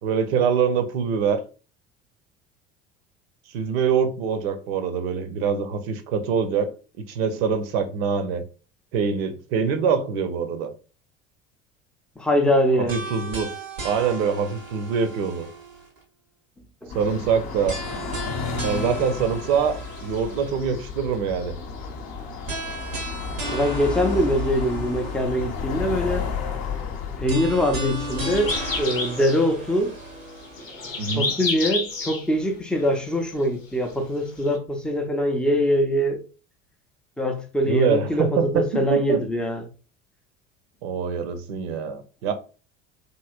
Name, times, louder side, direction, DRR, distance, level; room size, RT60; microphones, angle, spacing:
voice 1, 0.0-1.4 3.5-6.7 7.0-8.5 8.9-10.7 12.9-13.5 13.8-15.5 16.9-17.8 18.6-21.6 31.0-31.3 37.6-39.2 40.8-42.3, right 6 dB, 50° right, 0.6 m, -24 dB
voice 2, 12.2-13.0 16.8-16.9 23.5-26.3 27.2-30.0 31.2-36.2 37.2-39.7, equal, ahead, 0.4 m, -23 dB
sound 1, 12.9-16.0 17.7-20.6 22.5-25.6 27.3-30.7, right 2 dB, 85° right, 1.0 m, -35 dB
sound 2, 16.9-28.9, left 5 dB, 40° left, 0.7 m, -32 dB
sound 3, 17.0-34.6, left 3 dB, 85° left, 0.7 m, -36 dB
3.1 x 2.7 x 2.4 m
figure-of-eight pair, 70°, 38 cm